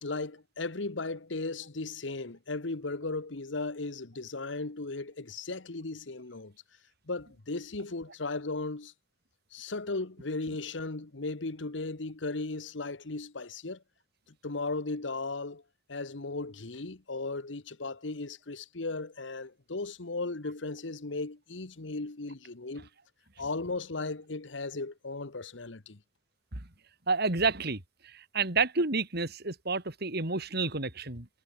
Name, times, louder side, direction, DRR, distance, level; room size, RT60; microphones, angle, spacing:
voice 1, 0.0-6.5 7.1-8.9 9.5-13.8 14.4-15.6 15.9-22.9 23.4-26.0, left 3 dB, 75° left, 1.3 m, -36 dB
voice 2, 27.1-31.3, right 4 dB, 60° right, 3.3 m, -30 dB
head